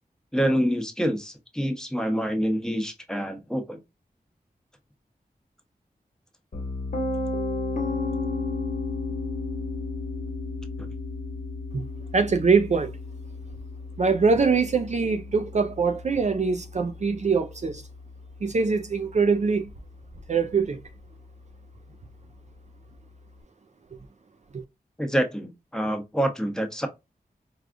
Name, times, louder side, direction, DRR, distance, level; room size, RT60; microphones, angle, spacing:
voice 1, 0.3-3.8 25.0-26.9, equal, 5° left, 0.9 m, -26 dB
Piano, 6.5-18.4, left 3 dB, 55° left, 1.1 m, -33 dB
voice 2, 12.1-12.9 14.0-17.8 18.4-19.7 20.3-20.8, right 5 dB, 45° right, 0.4 m, -23 dB
4.8 x 2.3 x 2.4 m
wide cardioid pair, 80°, 16 cm